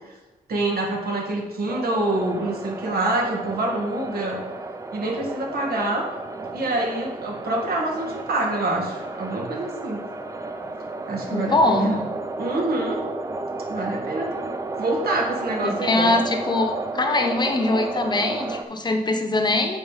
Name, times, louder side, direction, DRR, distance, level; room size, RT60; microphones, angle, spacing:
voice 1, 0.5-4.4 4.9-6.1 6.5-10.0 11.1-12.0 12.4-13.0 13.7-14.5 14.8-16.2, right 2 dB, 85° right, -1 dB, 2.0 m, -26 dB
sound 1, 1.7-18.6, right 3 dB, 20° right, 0.5 m, -33 dB
voice 2, 11.3-11.9 15.6-19.8, left 2 dB, 30° left, 4 dB, 0.8 m, -22 dB
8.2 x 4.5 x 5.1 m, 1.2 s
wide cardioid pair, 155°, 15 cm